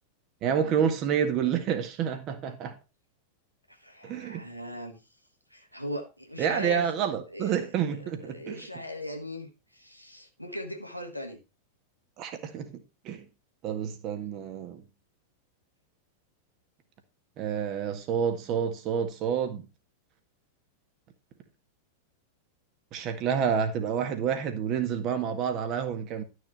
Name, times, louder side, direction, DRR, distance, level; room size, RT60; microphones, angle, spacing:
voice 1, 0.4-2.7 4.0-4.4 6.4-8.6 12.2-12.8 13.0-13.2 13.6-14.8 17.4-19.7 22.9-26.2, right 8 dB, 35° right, 1.8 m, -29 dB
voice 2, 3.7-5.0 5.5-6.9 7.3-11.4 14.2-14.3, equal, 90° left, 1.6 m, -39 dB
12.0 x 6.5 x 4.3 m
figure-of-eight pair, 90°, 0 cm